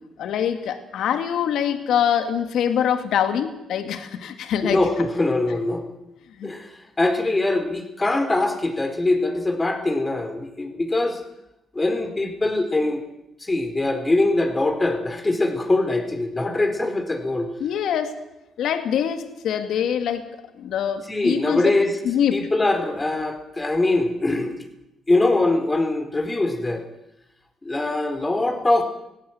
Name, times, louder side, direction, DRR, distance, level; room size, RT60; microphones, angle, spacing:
voice 1, 0.2-4.8 6.4-6.5 17.6-18.1 18.6-21.6 22.0-22.4, left 9 dB, 75° left, 8 dB, 2.3 m, -24 dB
voice 2, 4.6-5.8 6.4-6.7 7.0-11.2 11.7-13.0 13.4-17.5 21.1-21.9 22.3-24.5 25.1-26.8 27.6-28.8, left 2 dB, 20° left, 6 dB, 4.4 m, -22 dB
18.5 x 17.0 x 9.4 m, 0.89 s
cardioid pair, 90°, 0 cm